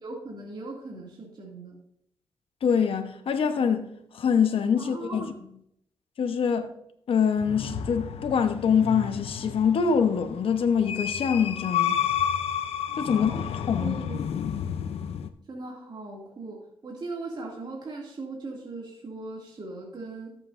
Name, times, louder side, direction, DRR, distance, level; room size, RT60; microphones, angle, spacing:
voice 1, 0.0-1.8 4.8-5.3 13.1-13.4 13.7-14.3 15.5-20.4, right 3 dB, 45° right, 2.5 m, -39 dB
voice 2, 2.6-3.9 4.1-5.3 6.2-6.7 7.1-12.0 13.0-13.3 13.7-14.0, left 6 dB, 65° left, 1.0 m, -24 dB
sound 1, 7.4-15.3, left 8 dB, 80° left, 0.6 m, -31 dB
13.5 x 7.7 x 2.6 m
cardioid pair, 75°, 10 cm